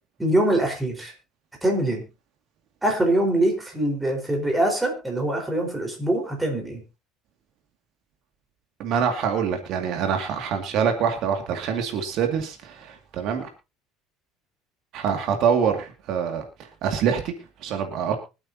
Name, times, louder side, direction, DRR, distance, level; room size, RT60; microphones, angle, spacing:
voice 1, 0.2-1.1 1.6-2.0 2.8-6.8, right 1 dB, 10° right, 2 dB, 4.6 m, -23 dB
voice 2, 8.8-13.5 14.9-16.4 16.8-17.3 17.6-18.2, right 7 dB, 55° right, 4 dB, 2.3 m, -25 dB
24.5 x 8.8 x 2.9 m, 0.28 s
cardioid pair, 135°, 0 cm